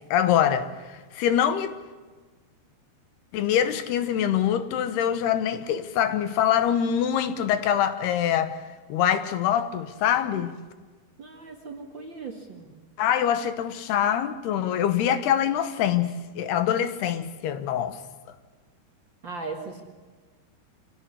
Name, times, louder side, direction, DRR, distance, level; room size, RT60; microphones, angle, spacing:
voice 1, 0.1-1.8 3.3-8.6 8.9-10.5 13.0-18.0, left 9 dB, 75° left, 3.1 m, -24 dB
voice 2, 11.2-12.7 19.2-19.8, right 4 dB, 35° right, 2.1 m, -38 dB
26.0 x 17.0 x 10.0 m
omnidirectional pair, 4.8 m